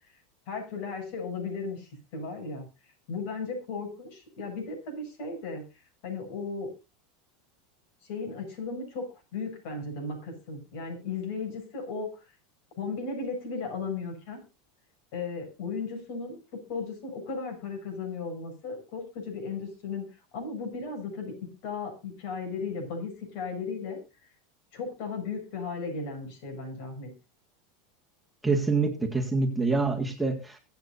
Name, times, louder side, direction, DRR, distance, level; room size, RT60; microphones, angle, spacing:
voice 1, 0.5-2.7 3.1-5.6 6.0-6.7 8.0-9.1 9.3-12.2 12.8-14.4 15.1-16.4 16.7-20.0 20.3-21.3 21.6-24.0 24.7-27.1, left 4 dB, 60° left, 5 dB, 7.6 m, -35 dB
voice 2, 28.4-30.6, right 3 dB, 5° right, 1 dB, 1.8 m, -26 dB
23.0 x 8.5 x 2.6 m, 0.27 s
supercardioid pair, 135°, 0 cm